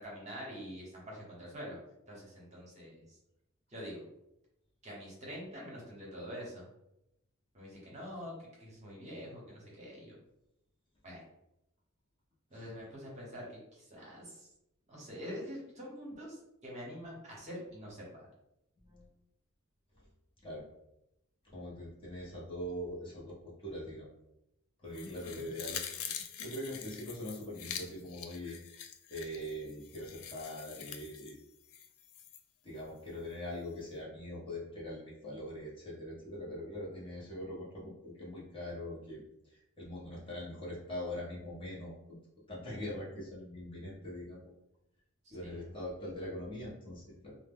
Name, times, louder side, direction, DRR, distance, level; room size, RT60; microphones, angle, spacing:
voice 1, 0.0-1.8 2.1-3.0 3.7-4.0 4.8-6.7 7.5-10.1 11.0-11.2 12.5-14.5 14.9-18.3 24.9-25.5 45.2-45.7, equal, 35° right, -4 dB, 0.8 m, -46 dB
voice 2, 18.8-19.1 20.4-20.6 21.4-24.1 24.8-25.8 26.4-28.6 29.1-31.4 32.6-39.2 39.5-42.2 42.5-44.4 45.3-47.4, left 1 dB, 25° left, -6 dB, 0.7 m, -42 dB
sound 1, 24.9-32.4 32.8-32.9, left 8 dB, 70° left, 0.3 m, -45 dB
2.1 x 2.1 x 3.4 m, 0.84 s
head